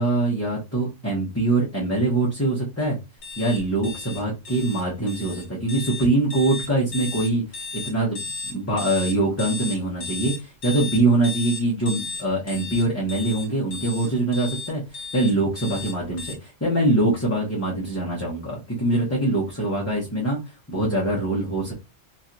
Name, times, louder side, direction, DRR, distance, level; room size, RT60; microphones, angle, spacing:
voice 1, 0.0-3.0 3.4-21.7, right 2 dB, 15° left, -6 dB, 0.8 m, -23 dB
sound 1, 3.2-16.3, left 4 dB, 85° left, 1.1 m, -35 dB
3.2 x 2.9 x 2.5 m, 0.26 s
omnidirectional pair, 1.1 m